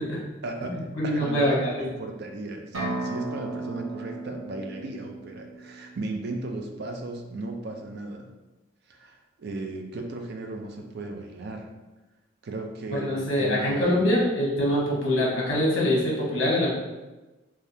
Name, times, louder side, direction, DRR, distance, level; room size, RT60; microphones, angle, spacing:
voice 1, 0.4-8.3 8.9-11.7 12.4-14.1, right 2 dB, 50° right, 3 dB, 0.4 m, -36 dB
voice 2, 1.0-1.8 12.9-16.7, left 1 dB, 60° left, -4 dB, 1.0 m, -24 dB
sound 1, 2.7-6.5, right 2 dB, 90° right, 0.8 m, -35 dB
3.4 x 2.3 x 2.7 m, 1.1 s
head